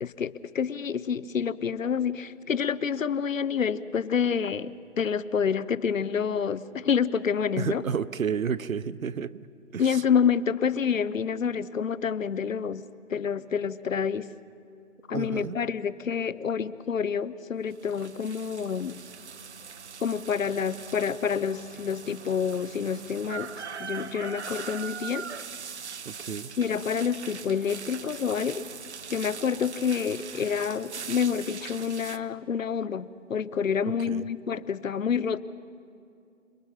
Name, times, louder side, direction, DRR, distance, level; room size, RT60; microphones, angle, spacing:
voice 1, 0.0-7.8 9.8-12.8 13.1-14.3 15.1-19.0 20.0-23.5 23.8-25.3 26.6-28.6 29.1-35.4, left 7 dB, 75° left, 17 dB, 1.0 m, -28 dB
voice 2, 7.6-10.0 15.1-15.6 26.1-26.5 34.1-34.3, right 7 dB, 85° right, 15 dB, 0.9 m, -31 dB
sound 1, 17.7-32.2, right 6 dB, 55° right, 1.0 m, -41 dB
27.0 x 20.5 x 5.8 m, 2.5 s
hypercardioid pair, 165°, 40 cm